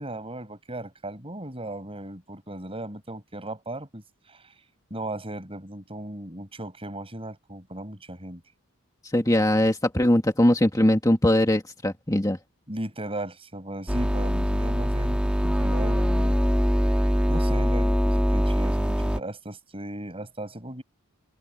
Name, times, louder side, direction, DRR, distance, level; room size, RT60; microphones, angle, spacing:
voice 1, 0.0-4.5 4.9-8.4 12.7-16.4 17.0-20.8, right 1 dB, 25° right, 7.1 m, -37 dB
voice 2, 9.1-12.4, left 1 dB, 15° left, 2.0 m, -21 dB
sound 1, 13.9-19.2, equal, 5° right, 2.7 m, -23 dB
head